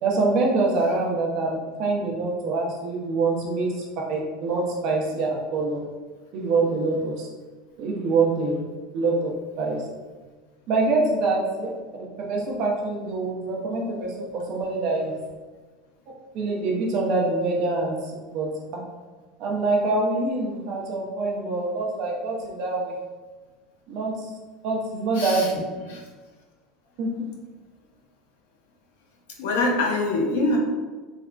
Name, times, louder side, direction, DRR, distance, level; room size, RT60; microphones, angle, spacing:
voice 1, 0.0-3.8 4.1-5.8 6.3-7.3 7.8-8.6 8.9-9.3 9.6-9.9 10.7-11.7 12.2-15.2 16.3-18.5 19.4-23.0 23.9-24.3 24.6-25.6 27.0-27.3, right 3 dB, 40° right, -2 dB, 0.6 m, -25 dB
voice 2, 25.1-25.5 25.9-26.0 29.4-30.6, left 2 dB, 85° left, 0 dB, 0.7 m, -24 dB
3.3 x 2.2 x 2.5 m, 1.3 s
supercardioid pair, 165°, 0 cm